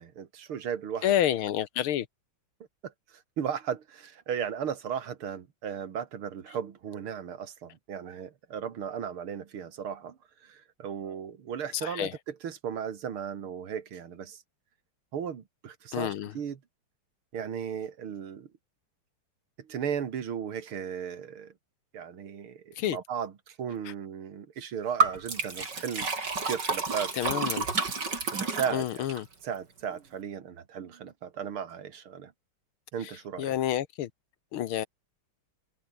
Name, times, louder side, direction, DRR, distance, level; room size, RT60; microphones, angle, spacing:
voice 1, 0.0-1.1 2.8-14.4 15.1-16.6 17.3-18.5 19.6-21.5 21.9-26.1 26.4-27.1 28.3-29.1 29.4-32.3 32.9-33.6, right 8 dB, 80° right, 2.7 m, -36 dB
voice 2, 1.0-2.1 11.8-12.1 15.9-16.3 22.8-23.0 27.1-27.7 28.7-29.3 33.4-34.1 34.5-34.9, left 11 dB, 80° left, 1.9 m, -28 dB
Liquid, 25.0-29.2, right 4 dB, 50° right, 4.3 m, -30 dB
omnidirectional pair, 2.3 m